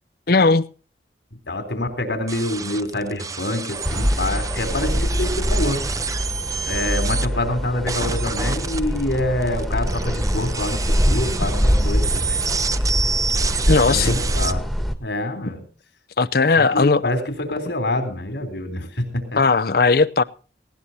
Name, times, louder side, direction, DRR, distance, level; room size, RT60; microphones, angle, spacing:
voice 1, 0.3-0.7 13.7-14.2 16.2-17.0 19.4-20.2, left 4 dB, 55° left, 0.7 m, -17 dB
voice 2, 1.5-5.8 6.7-12.4 13.7-14.6 15.0-15.6 16.6-19.4, left 1 dB, 85° left, 3.5 m, -26 dB
sound 1, 2.3-7.3 7.9-14.5, right 5 dB, 20° right, 0.6 m, -28 dB
sound 2, 3.8-14.9, equal, ahead, 1.4 m, -23 dB
19.0 x 18.0 x 2.7 m
head